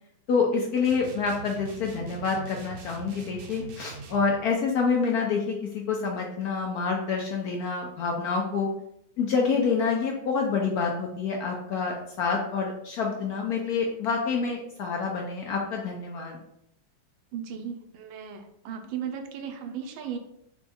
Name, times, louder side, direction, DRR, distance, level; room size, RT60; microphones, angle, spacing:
voice 1, 0.3-8.7 9.2-16.4, left 5 dB, 75° left, 0 dB, 0.8 m, -27 dB
sound 1, 0.8-4.3, right 4 dB, 65° right, 0.9 m, -42 dB
voice 2, 17.3-20.2, right 8 dB, 80° right, 6 dB, 1.4 m, -36 dB
4.5 x 2.3 x 4.1 m, 0.78 s
omnidirectional pair, 2.1 m